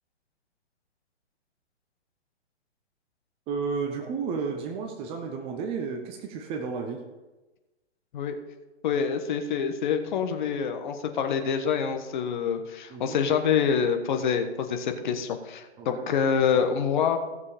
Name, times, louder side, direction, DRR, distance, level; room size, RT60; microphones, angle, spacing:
voice 1, 3.5-7.0 12.9-13.2 15.8-16.1, right 5 dB, 15° right, 4 dB, 0.7 m, -32 dB
voice 2, 8.8-17.2, left 7 dB, 40° left, 6 dB, 1.3 m, -26 dB
15.5 x 7.0 x 5.2 m, 1.1 s
figure-of-eight pair, 125°, 35 cm